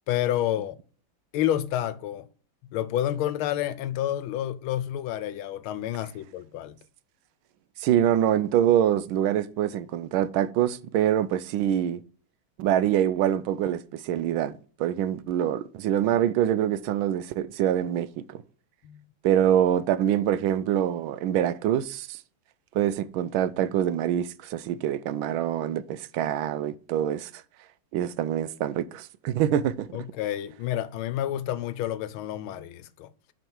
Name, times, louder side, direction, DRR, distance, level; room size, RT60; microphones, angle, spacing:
voice 1, 0.1-0.8 1.3-2.3 2.6-6.8 18.8-19.1 29.9-33.1, left 12 dB, 85° left, 1.5 m, -29 dB
voice 2, 7.8-12.0 12.6-14.5 14.8-18.4 19.2-22.2 22.7-27.4 27.9-30.0, right 10 dB, 80° right, 1.4 m, -25 dB
8.9 x 5.1 x 4.6 m
omnidirectional pair, 2.3 m